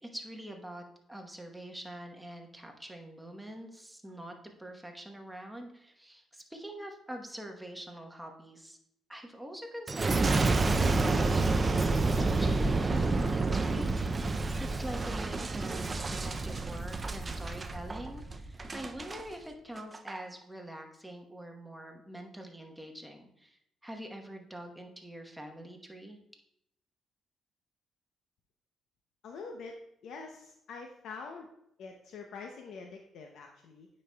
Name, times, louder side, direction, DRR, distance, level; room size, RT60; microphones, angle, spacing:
voice 1, 0.0-0.8 1.1-4.3 4.6-8.8 9.1-10.4 10.7-26.2, right 1 dB, 5° right, 3 dB, 1.0 m, -45 dB
Boom, 9.9-19.2 19.8-20.2, right 3 dB, 30° right, 0.4 m, -29 dB
voice 2, 29.2-29.8 30.0-31.5 31.8-33.9, left 4 dB, 75° left, 3 dB, 0.6 m, -45 dB
9.1 x 5.3 x 2.2 m, 0.74 s
cardioid pair, 90°, 0 cm